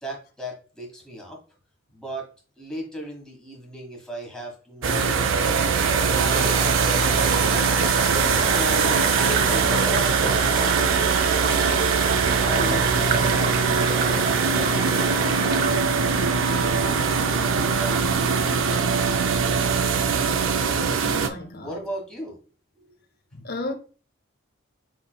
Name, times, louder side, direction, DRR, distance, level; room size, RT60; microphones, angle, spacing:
voice 1, 0.0-1.4 1.9-2.3 2.6-5.6 6.1-7.9 8.3-11.8 12.4-14.9 21.3-22.4 22.8-22.9, equal, 5° left, 1.4 m, -37 dB
sound 1, 4.8-21.3, right 5 dB, 85° right, 0.5 m, -22 dB
sound 2, 6.3-15.8, right 3 dB, 50° right, 0.8 m, -29 dB
voice 2, 20.8-21.9 23.3-23.7, left 2 dB, 50° left, 0.7 m, -34 dB
6.2 x 3.6 x 2.2 m
head